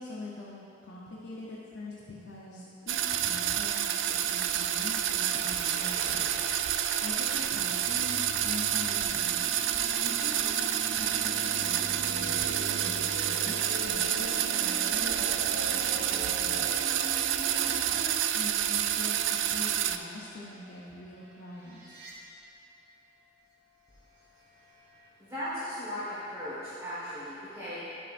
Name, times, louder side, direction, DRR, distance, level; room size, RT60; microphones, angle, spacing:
voice 1, 0.0-16.1 16.4-22.0, left 1 dB, 65° left, -5 dB, 0.7 m, -44 dB
sound 1, 2.9-20.0, right 10 dB, 75° right, 0.3 m, -29 dB
sound 2, 4.5-9.5, left 1 dB, 30° left, 1.1 m, -47 dB
sound 3, 7.8-18.3 21.5-22.2 24.7-25.1, right 1 dB, 55° right, 1.1 m, -42 dB
voice 2, 25.2-27.8, equal, 15° right, -12 dB, 1.4 m, -37 dB
9.9 x 7.5 x 2.5 m, 2.8 s
head